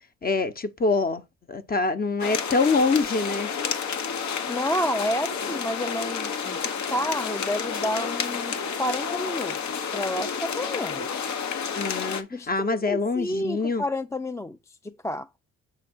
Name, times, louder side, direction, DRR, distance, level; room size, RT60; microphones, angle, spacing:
voice 1, 0.2-1.2 1.5-3.5 11.7-13.8, left 3 dB, 30° left, 1.1 m, -25 dB
sound 1, 2.2-12.2, left 6 dB, 70° left, 1.3 m, -30 dB
voice 2, 4.5-11.3 12.3-15.3, left 1 dB, 10° left, 0.4 m, -30 dB
7.7 x 3.2 x 6.3 m
cardioid pair, 90°, 30 cm